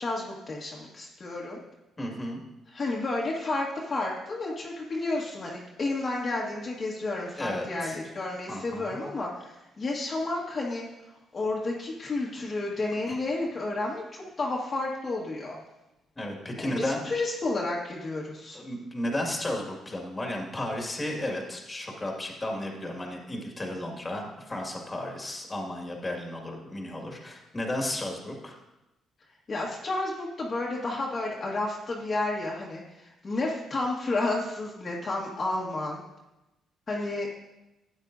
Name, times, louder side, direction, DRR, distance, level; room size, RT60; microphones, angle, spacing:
voice 1, 0.0-1.6 2.7-10.9 11.3-15.6 16.6-18.6 29.5-36.0 36.9-37.3, left 2 dB, 40° left, -4 dB, 1.6 m, -31 dB
voice 2, 2.0-2.4 7.4-8.0 8.5-9.0 13.1-13.2 16.2-17.1 18.5-28.6, left 1 dB, 20° left, 1 dB, 2.1 m, -33 dB
12.5 x 8.8 x 2.7 m, 0.97 s
cardioid pair, 90°, 0 cm